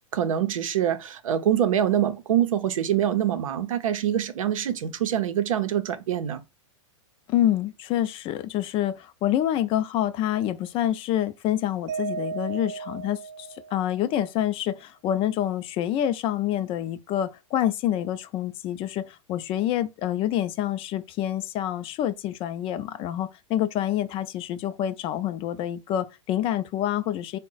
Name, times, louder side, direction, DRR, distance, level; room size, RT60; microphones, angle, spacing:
voice 1, 0.1-6.4, right 10 dB, 85° right, 0.6 m, -25 dB
voice 2, 7.3-27.4, left 11 dB, 35° left, 0.4 m, -27 dB
Mallet percussion, 11.9-14.1, right 5 dB, 35° right, 0.4 m, -35 dB
3.7 x 2.1 x 3.9 m
hypercardioid pair, 120°, 17 cm